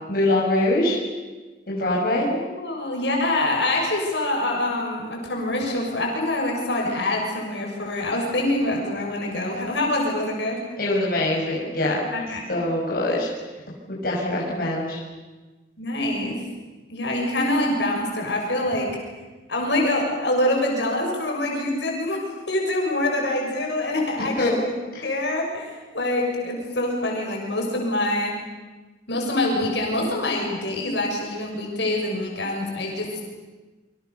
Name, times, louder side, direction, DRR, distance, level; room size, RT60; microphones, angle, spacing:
voice 1, 0.1-1.0 1.7-2.3 10.8-12.0 12.5-13.3 13.9-15.0 24.4-24.5 24.9-25.1, left 1 dB, 55° left, -4 dB, 6.2 m, -23 dB
voice 2, 2.3-10.6 12.1-12.4 15.8-16.4 16.9-19.0 19.5-24.7 25.0-28.3 29.1-33.2, left 1 dB, 75° left, 0 dB, 6.8 m, -25 dB
28.5 x 25.0 x 7.0 m, 1.2 s
head